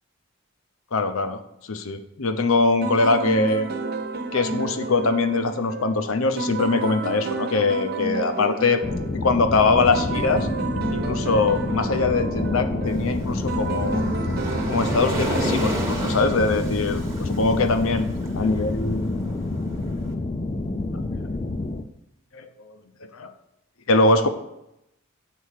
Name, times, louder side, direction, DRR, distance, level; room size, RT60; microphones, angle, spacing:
voice 1, 0.9-1.4 1.7-3.7 4.3-8.8 9.2-10.5 10.9-14.0 14.7-18.1 18.3-19.3 22.3-22.5 23.1-23.3 23.9-24.3, left 3 dB, 75° left, 9 dB, 0.8 m, -22 dB
sound 1, 2.8-17.0, right 3 dB, 45° right, 0.7 m, -31 dB
sound 2, 8.8-21.8, left 2 dB, 30° left, 0.4 m, -28 dB
Waves surf, 12.9-20.0, right 1 dB, 15° right, 1.1 m, -33 dB
7.5 x 4.6 x 6.5 m, 0.84 s
head